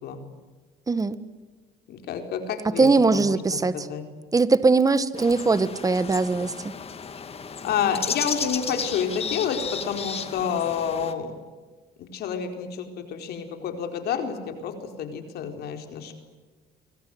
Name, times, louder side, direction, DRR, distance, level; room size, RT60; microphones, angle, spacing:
voice 1, 0.9-1.2 2.8-3.9 4.3-6.7, right 3 dB, 20° right, 14 dB, 1.7 m, -21 dB
voice 2, 1.9-4.0 7.6-11.3 12.0-16.1, left 7 dB, 70° left, 6 dB, 4.5 m, -29 dB
sound 1, 5.2-11.1, left 6 dB, 35° left, 2.5 m, -34 dB
29.0 x 24.5 x 8.0 m, 1.3 s
cardioid pair, 110°, 17 cm